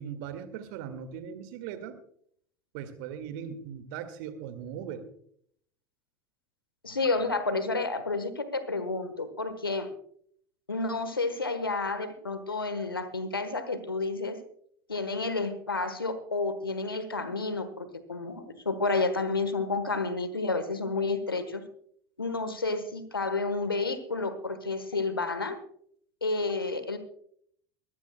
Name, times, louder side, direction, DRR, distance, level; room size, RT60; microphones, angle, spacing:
voice 1, 0.0-2.0 2.7-5.1, right 8 dB, 60° right, 10 dB, 1.8 m, -39 dB
voice 2, 6.8-9.9 10.7-14.4 14.9-21.6 22.2-25.6 26.2-27.0, left 3 dB, 90° left, 11 dB, 1.2 m, -30 dB
23.0 x 14.5 x 2.2 m, 0.64 s
figure-of-eight pair, 75°, 12 cm